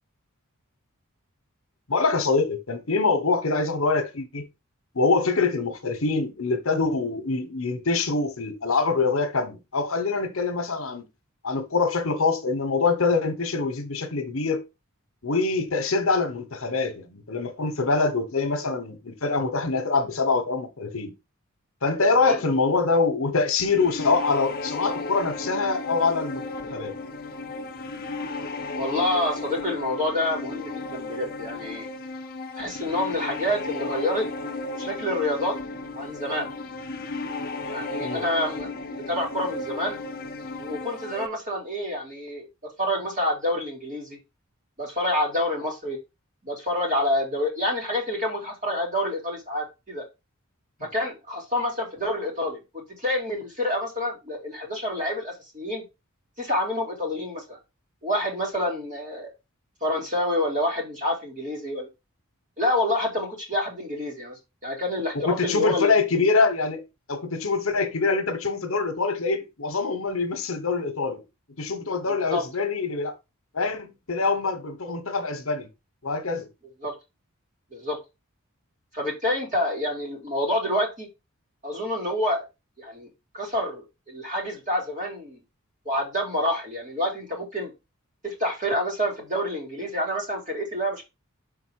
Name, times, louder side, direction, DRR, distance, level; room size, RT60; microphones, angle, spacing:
voice 1, 1.9-4.4 4.9-11.0 11.4-14.6 15.2-21.1 21.8-26.4 26.7-26.9 38.0-38.2 65.1-66.8 67.1-71.2 71.6-73.1 73.5-75.7 76.0-76.5, left 4 dB, 70° left, 1.2 m, -24 dB
sound 1, 23.6-41.3, left 3 dB, 40° left, 0.7 m, -34 dB
voice 2, 28.7-31.9 32.5-34.3 34.8-35.6 36.0-36.5 37.7-40.0 40.6-42.5 42.8-44.2 44.8-46.0 46.4-50.0 50.9-52.6 53.0-55.8 56.4-57.6 58.0-59.3 59.8-61.9 62.6-65.9 72.1-72.4 76.8-76.9 77.7-78.0 78.9-81.1 81.6-82.4 82.8-83.1 83.3-85.4 85.8-87.7 88.2-91.0, left 1 dB, 35° right, 2.7 m, -28 dB
5.8 x 3.9 x 4.7 m
head